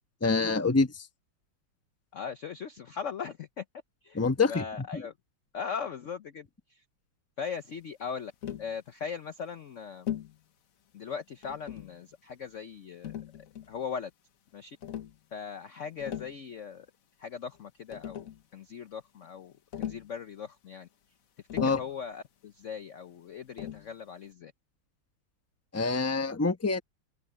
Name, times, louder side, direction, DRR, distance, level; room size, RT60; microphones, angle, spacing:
voice 1, 0.2-1.1 4.1-5.0 21.6-21.8 25.7-26.8, left 3 dB, 10° left, 0.7 m, -26 dB
voice 2, 2.1-3.6 4.0-5.1 5.5-6.8 7.4-8.3 8.6-10.1 10.9-13.2 13.7-14.1 14.5-14.8 15.3-16.9 17.2-20.9 21.5-24.5, left 6 dB, 70° left, 0.7 m, -39 dB
Tap, 8.4-8.7 10.1-10.4 11.4-12.0 13.0-13.8 14.8-15.2 15.9-16.4 17.5-17.6 17.9-18.4 19.7-20.1 21.5-22.0 23.6-23.9, left 10 dB, 50° left, 1.1 m, -38 dB
open air
omnidirectional pair, 2.4 m